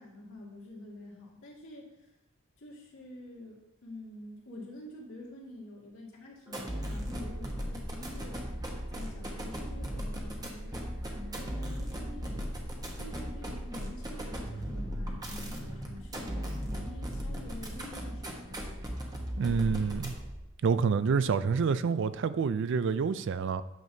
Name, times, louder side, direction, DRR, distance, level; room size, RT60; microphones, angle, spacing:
voice 1, 0.0-1.9 2.6-8.5 8.9-10.8 11.1-12.5 13.0-18.9, left 1 dB, 70° left, 2.1 m, -47 dB
sound 1, 6.5-20.4, equal, 20° right, 1.1 m, -37 dB
voice 2, 19.4-20.1 20.6-23.6, right 5 dB, 60° right, 0.4 m, -27 dB
9.2 x 6.9 x 2.7 m
head